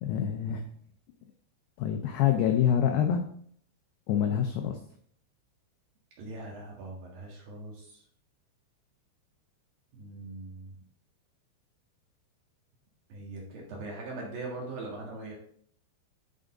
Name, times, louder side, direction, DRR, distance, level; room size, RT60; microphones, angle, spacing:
voice 1, 0.0-0.6 1.8-3.2 4.1-4.8, left 9 dB, 85° left, 4 dB, 2.3 m, -26 dB
voice 2, 6.2-8.0 9.9-10.8 13.1-15.3, right 2 dB, 60° right, -2 dB, 2.9 m, -41 dB
11.0 x 5.3 x 3.7 m, 0.62 s
omnidirectional pair, 5.5 m